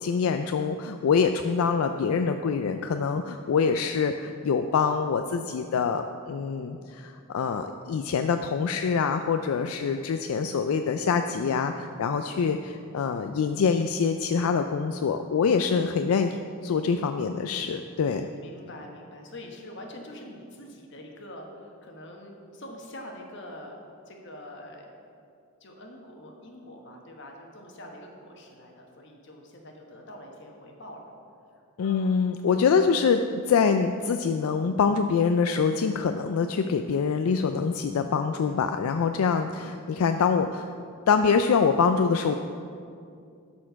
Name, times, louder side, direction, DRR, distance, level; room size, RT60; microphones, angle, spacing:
voice 1, 0.0-18.3 31.8-33.2 33.5-40.7 41.1-42.4, left 5 dB, 80° left, 7 dB, 0.4 m, -25 dB
voice 2, 18.4-23.8 24.1-24.9 25.6-31.1 31.8-32.0 32.8-32.9 33.6-33.7, left 1 dB, 55° left, 1 dB, 1.2 m, -44 dB
12.0 x 4.4 x 5.7 m, 2.4 s
head